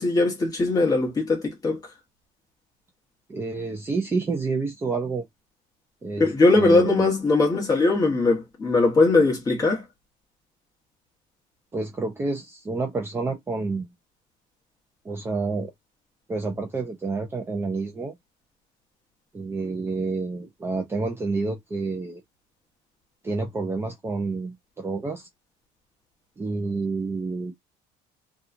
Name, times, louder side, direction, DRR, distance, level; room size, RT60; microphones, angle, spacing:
voice 1, 0.0-1.8 6.2-9.8, left 3 dB, 20° left, 1.1 m, -20 dB
voice 2, 3.3-5.3 6.0-7.1 11.7-13.9 15.0-15.7 16.3-18.2 19.3-22.2 23.2-25.3 26.4-27.5, right 3 dB, 15° right, 0.4 m, -29 dB
2.8 x 2.3 x 2.5 m
cardioid pair, 155°, 18 cm